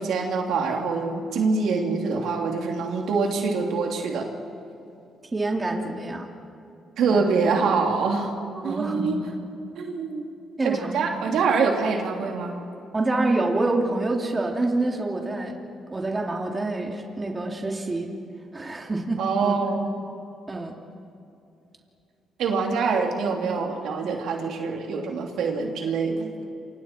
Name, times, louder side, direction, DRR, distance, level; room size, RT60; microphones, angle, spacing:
voice 1, 0.0-4.3 7.0-8.3 8.6-9.2 9.7-10.2 10.6-12.6 19.2-19.9 22.4-26.3, right 4 dB, 75° right, 1 dB, 3.1 m, -25 dB
voice 2, 5.3-6.3 7.1-7.3 8.5-9.1 10.6-11.0 12.9-15.5 15.9-18.1 18.5-19.5 20.5-20.7, right 2 dB, 25° right, 1 dB, 3.0 m, -27 dB
28.5 x 26.0 x 4.6 m, 2.7 s
cardioid pair, 90°, 0 cm